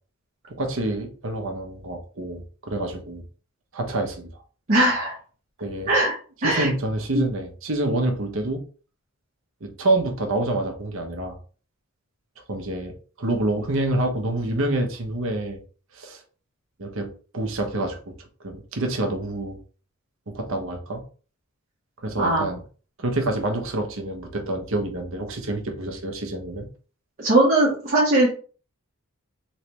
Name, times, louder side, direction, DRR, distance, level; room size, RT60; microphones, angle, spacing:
voice 1, 0.5-3.2 3.7-4.3 5.6-5.9 6.4-8.6 9.6-11.4 12.5-15.6 15.9-16.2 16.8-18.0 18.4-19.6 20.3-21.0 22.0-22.6 23.0-26.7, right 2 dB, 60° right, 4 dB, 0.9 m, -27 dB
voice 2, 4.7-5.2 5.9-6.1 6.4-6.7 7.1-7.2 22.2-22.4 27.2-28.3, right 1 dB, 40° right, -7 dB, 1.1 m, -19 dB
3.2 x 3.1 x 3.0 m, 0.39 s
head